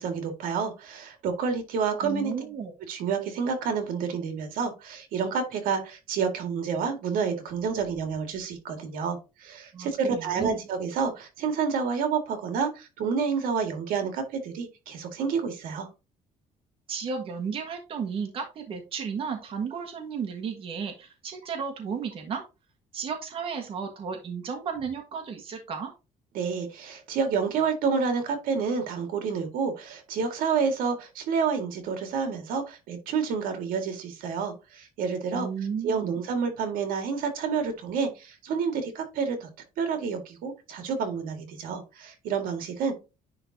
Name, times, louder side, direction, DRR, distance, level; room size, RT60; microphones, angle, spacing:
voice 1, 0.0-2.3 2.9-15.9 26.3-35.5 35.8-39.5 39.8-43.0, right 5 dB, 75° right, 6 dB, 2.0 m, -29 dB
voice 2, 1.9-2.7 9.7-10.6 16.9-22.4 22.9-25.9 35.3-36.2, right 6 dB, 40° right, 4 dB, 1.4 m, -33 dB
10.0 x 3.9 x 2.8 m, 0.27 s
cardioid pair, 175°, 15 cm